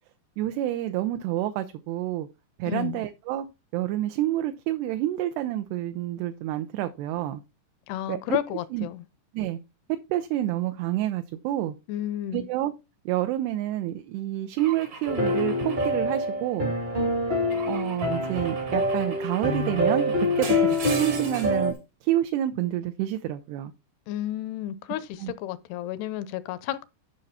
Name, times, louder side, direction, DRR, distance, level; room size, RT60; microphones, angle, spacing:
voice 1, 0.4-2.3 2.6-3.5 3.7-7.4 8.1-8.4 8.7-8.9 9.3-9.6 10.1-11.8 12.3-12.7 13.1-16.7 17.7-21.7 22.0-23.7 25.2-25.3, right 13 dB, 80° right, 2.6 m, -28 dB
voice 2, 2.7-3.0 7.9-9.0 11.9-12.5 24.1-26.9, left 12 dB, 80° left, 2.5 m, -32 dB
Car / Engine / Glass, 14.6-16.8 17.5-21.7, right 5 dB, 50° right, 1.6 m, -40 dB
sound 1, 15.0-21.7, left 1 dB, 30° right, 0.9 m, -26 dB
11.5 x 5.6 x 4.2 m
omnidirectional pair, 5.0 m